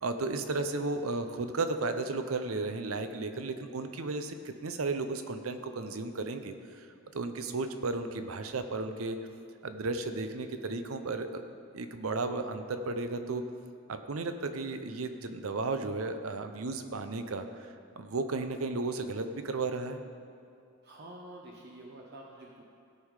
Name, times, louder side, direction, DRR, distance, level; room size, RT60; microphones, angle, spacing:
voice 1, 0.0-6.9 7.1-9.2 9.6-11.4 11.7-13.4 13.9-20.0, right 3 dB, 80° right, 8 dB, 0.7 m, -34 dB
voice 2, 20.8-22.6, right 1 dB, 55° right, -1 dB, 0.8 m, -48 dB
16.5 x 5.6 x 4.8 m, 2.5 s
head